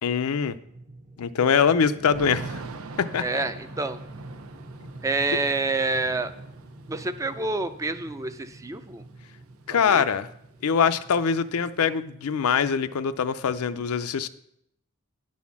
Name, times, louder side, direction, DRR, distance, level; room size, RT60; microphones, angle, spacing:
voice 1, 0.0-0.6 1.2-2.6 3.0-3.4 4.8-4.9 9.7-10.3 10.6-14.3, left 6 dB, 90° left, 12 dB, 0.5 m, -23 dB
sound 1, 0.6-12.9, right 1 dB, 40° right, 0.9 m, -46 dB
Thunder / Rain, 2.1-10.0 10.2-10.3 10.6-12.0, right 4 dB, 80° right, 0.7 m, -44 dB
voice 2, 3.2-4.0 5.0-6.3 6.9-9.0 9.7-10.0, right 3 dB, 15° right, 11 dB, 0.4 m, -28 dB
10.0 x 4.2 x 7.1 m, 0.75 s
head